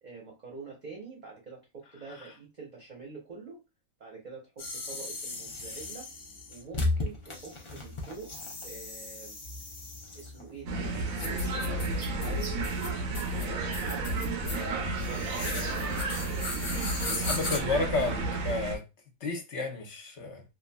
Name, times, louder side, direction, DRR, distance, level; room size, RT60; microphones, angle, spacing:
voice 1, 0.0-3.6 4.0-6.1 6.5-8.3 8.6-9.4 10.1-11.8 12.2-12.8 13.3-15.5 17.0-17.6, right 4 dB, 40° right, 0.8 m, -46 dB
sound 1, 4.6-17.6, left 2 dB, 40° left, 0.4 m, -37 dB
sound 2, 10.7-18.8, right 2 dB, 75° right, 1.1 m, -32 dB
voice 2, 17.0-18.8 19.2-20.4, left 3 dB, 55° left, 1.1 m, -32 dB
3.0 x 2.5 x 2.2 m
omnidirectional pair, 1.5 m